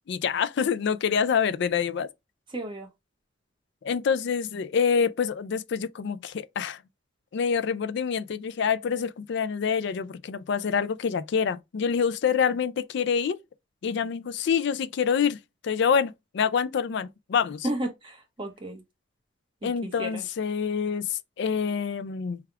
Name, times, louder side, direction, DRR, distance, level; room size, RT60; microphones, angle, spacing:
voice 1, 0.1-2.1 3.8-6.8 7.3-13.4 13.8-15.4 15.6-17.7 19.6-22.4, left 6 dB, 60° left, 0.4 m, -26 dB
voice 2, 2.5-2.9 17.6-18.8 19.6-20.3, right 1 dB, 25° right, 0.9 m, -33 dB
3.4 x 2.3 x 4.4 m
head